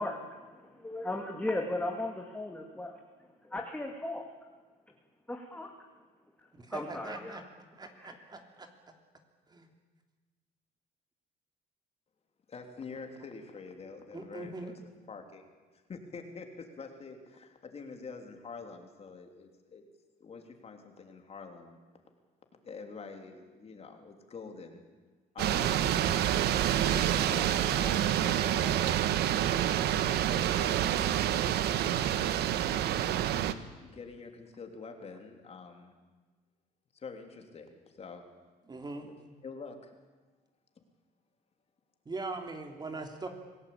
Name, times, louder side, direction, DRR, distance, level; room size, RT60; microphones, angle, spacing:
voice 1, 0.0-3.0 3.4-4.2 5.3-5.7 6.7-7.4 8.0-8.1, left 2 dB, 10° left, 1 dB, 2.5 m, -36 dB
voice 2, 6.6-7.4 7.7-8.7 9.5-9.7 14.1-14.7 38.7-39.1 42.0-43.3, right 3 dB, 25° right, 5 dB, 3.2 m, -41 dB
voice 3, 12.5-15.5 15.7-19.8 20.2-21.8 22.6-24.8 25.3-25.9 26.9-32.1 33.3-35.9 36.9-38.3 39.0-39.1 39.4-39.9, left 4 dB, 35° left, 5 dB, 3.4 m, -46 dB
sound 1, 25.4-33.5, right 11 dB, 75° right, 1.3 m, -28 dB
26.5 x 17.5 x 8.7 m, 1.3 s
cardioid pair, 110°, 17 cm